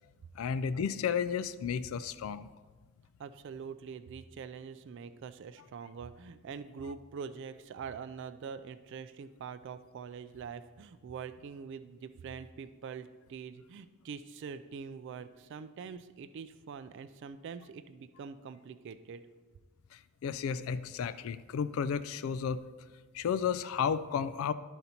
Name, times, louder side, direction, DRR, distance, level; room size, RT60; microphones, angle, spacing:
voice 1, 0.4-2.5 19.9-22.6 23.1-24.5, left 7 dB, 70° left, 13 dB, 0.3 m, -33 dB
voice 2, 3.2-19.2, right 6 dB, 55° right, 12 dB, 0.3 m, -44 dB
12.0 x 4.0 x 4.3 m, 1.3 s
head